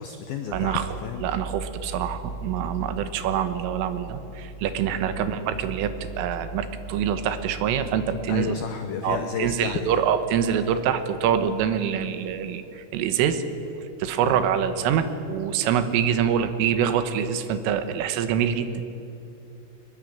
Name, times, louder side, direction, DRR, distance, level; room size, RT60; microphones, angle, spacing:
voice 1, 0.0-1.3 5.1-5.4 8.3-10.0 14.2-14.4, left 7 dB, 85° left, 7 dB, 2.1 m, -32 dB
voice 2, 0.5-0.8 1.2-8.6 9.0-13.4 14.0-18.7, right 8 dB, 80° right, 10 dB, 3.8 m, -25 dB
23.5 x 20.5 x 9.0 m, 2.8 s
omnidirectional pair, 5.8 m